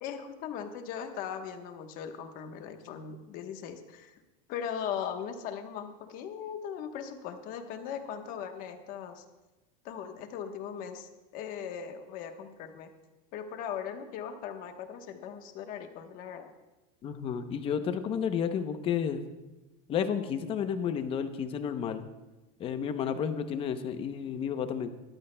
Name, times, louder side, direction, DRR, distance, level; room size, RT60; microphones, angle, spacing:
voice 1, 0.0-4.1 4.5-9.2 9.8-12.9 13.3-16.5, left 8 dB, 45° left, 6 dB, 1.2 m, -39 dB
voice 2, 17.0-19.3 19.9-22.0 22.6-24.9, left 7 dB, 30° left, 9 dB, 0.8 m, -31 dB
22.0 x 13.0 x 2.2 m, 1.1 s
cardioid pair, 165°, 19 cm